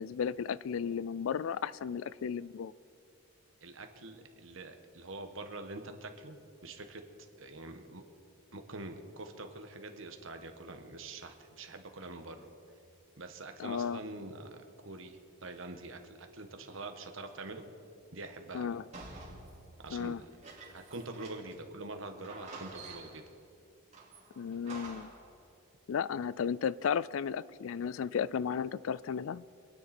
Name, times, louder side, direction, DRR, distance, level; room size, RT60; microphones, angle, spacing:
voice 1, 0.0-2.7 13.6-14.0 18.5-18.8 19.9-20.2 24.4-25.1 25.9-29.4, left 7 dB, 65° left, 0.3 m, -34 dB
voice 2, 3.6-6.4 6.6-7.0 7.4-8.0 8.5-12.5 13.2-14.6 14.8-17.7 18.1-18.8 19.8-20.1 20.7-23.2, right 2 dB, 60° right, 1.3 m, -45 dB
sound 1, 18.9-21.7 21.9-22.0 22.2-23.3 23.9-25.3, right 3 dB, 30° right, 2.8 m, -49 dB
26.0 x 9.7 x 4.3 m
head